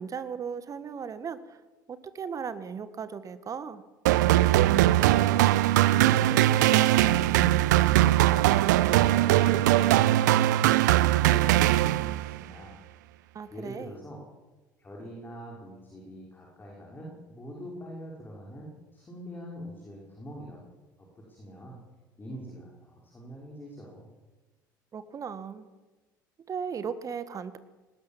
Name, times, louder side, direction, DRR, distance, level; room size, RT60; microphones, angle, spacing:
voice 1, 0.0-1.6 1.9-3.8 13.3-13.9 24.9-25.7 26.4-27.6, right 6 dB, 35° right, 13 dB, 1.7 m, -36 dB
sound 1, 4.1-12.4, right 15 dB, 65° right, 0.7 m, -21 dB
voice 2, 11.2-12.7 13.1-14.2 14.8-20.7 21.0-21.8 22.2-24.1, equal, 20° left, -3 dB, 5.8 m, -43 dB
19.5 x 18.5 x 7.5 m, 1.2 s
figure-of-eight pair, 60°, 10 cm